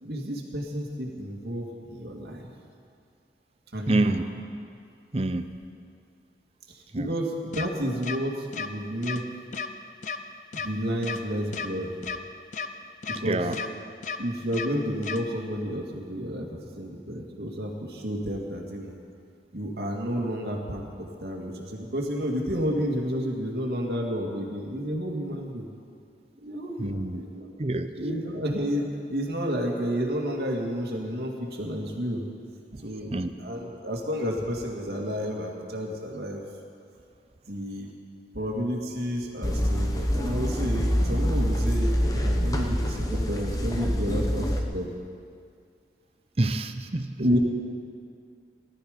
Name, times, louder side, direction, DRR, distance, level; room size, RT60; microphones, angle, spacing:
voice 1, 0.0-2.5 3.7-4.2 6.7-9.2 10.5-12.0 13.1-13.5 14.2-19.0 19.5-25.6 26.4-27.5 27.9-32.2 32.8-33.1 33.4-36.4 37.5-37.9 38.3-44.9 47.2-47.4, equal, 65° right, 0 dB, 2.1 m, -31 dB
voice 2, 3.9-4.2 5.1-5.5 6.9-7.1 13.2-13.6 26.8-27.2 27.6-27.9 32.7-32.8 33.1-33.3 46.4-47.1, right 2 dB, 35° right, 10 dB, 0.6 m, -27 dB
sound 1, 7.5-7.7 8.0-8.2 8.5-8.7 9.0-9.2 9.5-9.7 10.0-10.2 10.5-10.7 11.0-11.2 11.5-11.7 12.0-12.2 12.5-12.7 13.0-13.2 13.5-13.7 14.0-14.2 14.5-14.7 15.0-15.2, left 5 dB, 45° left, 0.6 m, -32 dB
sound 2, 39.4-44.6, equal, 20° left, 1.0 m, -25 dB
18.5 x 12.5 x 5.1 m, 2.3 s
head